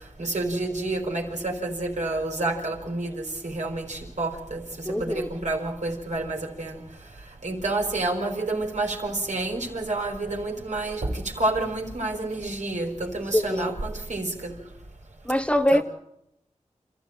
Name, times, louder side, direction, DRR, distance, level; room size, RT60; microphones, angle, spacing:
voice 1, 0.2-6.8 7.4-14.5 15.7-15.8, right 2 dB, 70° right, 4.6 m, -29 dB
voice 2, 4.8-5.3 13.3-13.7 15.2-15.8, equal, 10° left, 1.1 m, -23 dB
27.5 x 14.0 x 9.0 m
cardioid pair, 50°, 13 cm